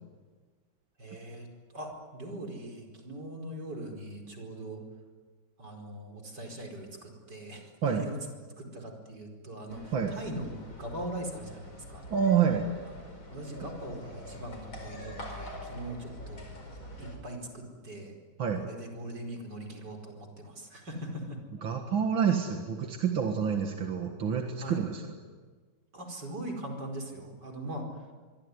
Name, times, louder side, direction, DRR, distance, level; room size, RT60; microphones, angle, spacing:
voice 1, 1.0-1.5 1.7-4.8 5.6-8.2 8.6-12.0 13.3-16.4 17.0-18.2 18.6-21.4 24.6-24.9 25.9-28.0, right 1 dB, 60° right, 2 dB, 5.3 m, -41 dB
sound 1, 9.7-17.2, left 1 dB, 85° left, 5.8 m, -45 dB
voice 2, 12.1-12.7 18.4-18.6 21.6-25.1, right 7 dB, 85° right, 3 dB, 2.6 m, -28 dB
25.0 x 24.0 x 9.7 m, 1.5 s
omnidirectional pair, 2.1 m